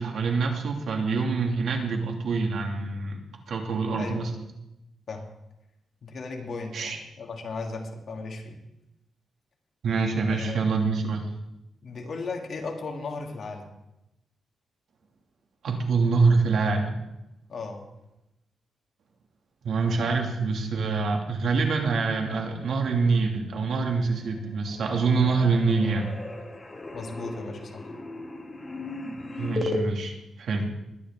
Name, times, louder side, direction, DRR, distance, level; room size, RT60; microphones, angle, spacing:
voice 1, 0.0-3.2 3.5-4.3 6.7-7.0 9.8-11.3 15.6-16.9 19.6-26.1 29.4-30.1 30.4-30.6, right 4 dB, 70° right, 2 dB, 2.5 m, -25 dB
voice 2, 4.0-4.3 5.1-5.3 6.0-8.6 10.3-10.6 11.8-13.7 17.5-17.9 26.9-27.9, left 3 dB, 55° left, 1 dB, 2.6 m, -36 dB
sound 1, 24.0-24.4 24.7-29.8, left 2 dB, 20° left, 1.8 m, -36 dB
20.5 x 10.0 x 3.7 m, 0.89 s
cardioid pair, 115°, 0 cm